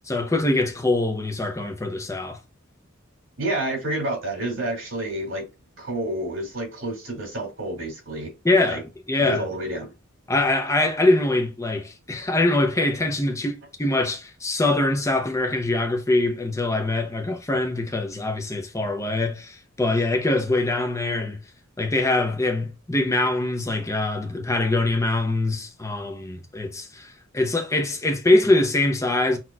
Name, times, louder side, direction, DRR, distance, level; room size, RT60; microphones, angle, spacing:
voice 1, 0.1-2.4 8.4-9.4 10.3-21.4 21.8-29.4, left 2 dB, 15° left, 0.8 m, -23 dB
voice 2, 3.4-5.5 5.8-8.3 8.6-8.8 9.2-9.9, right 1 dB, 80° right, 2.6 m, -29 dB
5.9 x 3.0 x 2.4 m
head